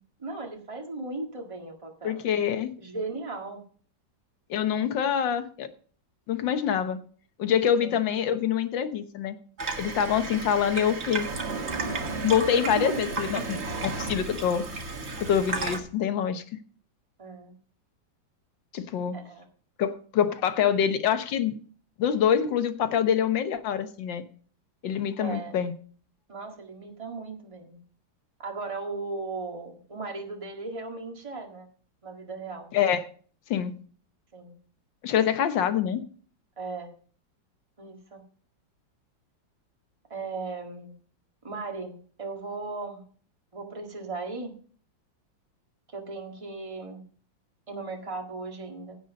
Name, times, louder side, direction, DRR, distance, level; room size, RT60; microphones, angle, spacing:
voice 1, 0.2-2.2 2.8-3.6 7.8-8.0 12.5-13.0 13.3-13.6 17.2-17.5 19.1-19.4 25.2-25.6 26.3-27.8 28.4-31.7 32.0-32.7 34.3-34.6 36.6-36.9 37.8-38.2 40.1-40.9 41.4-43.0 43.5-44.5 45.9-47.0 47.7-49.0, right 3 dB, 15° right, 1 dB, 1.9 m, -37 dB
voice 2, 2.0-2.7 4.5-5.7 6.3-7.0 7.4-9.4 9.8-11.3 12.2-14.9 15.2-16.4 18.7-19.2 19.8-21.5 22.0-24.2 24.8-25.7 32.7-33.1 33.5-33.7 35.0-36.0, left 8 dB, 75° left, 10 dB, 1.7 m, -25 dB
Water tap faucet / Sink (filling or washing), 9.6-15.8, right 3 dB, 35° right, 1.7 m, -33 dB
16.0 x 5.6 x 5.2 m, 0.43 s
omnidirectional pair, 2.1 m